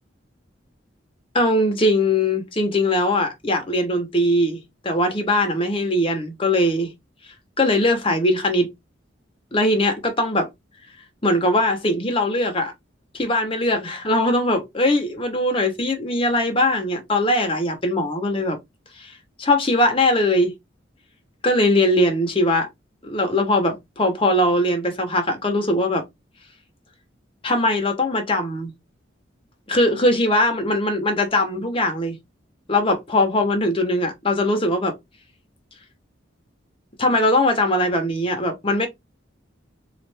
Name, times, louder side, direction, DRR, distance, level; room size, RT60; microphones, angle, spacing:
voice 1, 1.3-6.9 7.6-8.7 9.5-10.5 11.2-12.7 13.1-18.6 19.0-19.1 19.4-20.6 21.4-22.7 23.0-26.0 27.4-28.7 29.7-32.2 32.7-35.0 37.0-38.9, left 1 dB, 30° left, 0.9 m, -20 dB
3.1 x 2.5 x 3.3 m
head